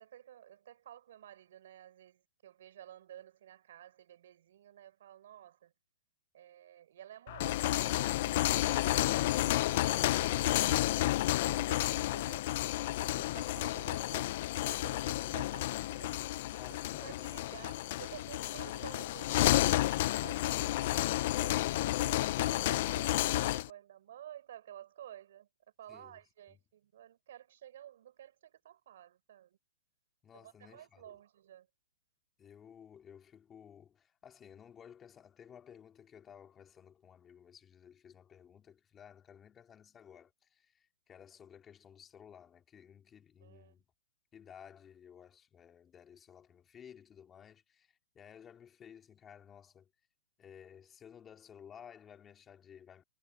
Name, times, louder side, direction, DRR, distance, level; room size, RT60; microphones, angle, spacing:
voice 1, 0.0-5.7 6.3-12.5 12.9-16.5 17.0-19.6 20.2-25.5 25.8-29.6 30.3-31.7 43.4-43.7, right 11 dB, 60° right, 4.3 m, -53 dB
sound 1, 7.3-23.7, left 16 dB, 45° left, 0.4 m, -31 dB
voice 2, 16.6-17.3 25.9-26.2 30.2-31.2 32.4-43.8 44.3-49.9 50.4-53.0, left 8 dB, 15° left, 2.8 m, -56 dB
hypercardioid pair, 160°, 0 cm